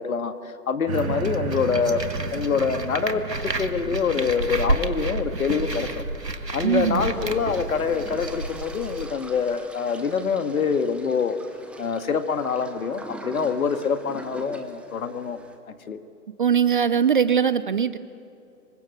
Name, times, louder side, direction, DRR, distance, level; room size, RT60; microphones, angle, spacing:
voice 1, 0.0-2.0 2.3-6.0 6.5-11.4 11.8-15.4 15.7-16.0, left 6 dB, 60° left, 9 dB, 1.9 m, -25 dB
sound 1, 0.9-8.2 8.8-8.9, right 5 dB, 60° right, 2.9 m, -36 dB
sound 2, 0.9-9.1, right 2 dB, 85° right, 1.7 m, -31 dB
voice 2, 6.6-7.1 16.4-18.0, right 7 dB, 35° right, 15 dB, 0.5 m, -21 dB
sound 3, 7.1-15.6, right 2 dB, ahead, 1.0 m, -43 dB
26.5 x 24.5 x 6.4 m, 2.7 s
figure-of-eight pair, 120°, 48 cm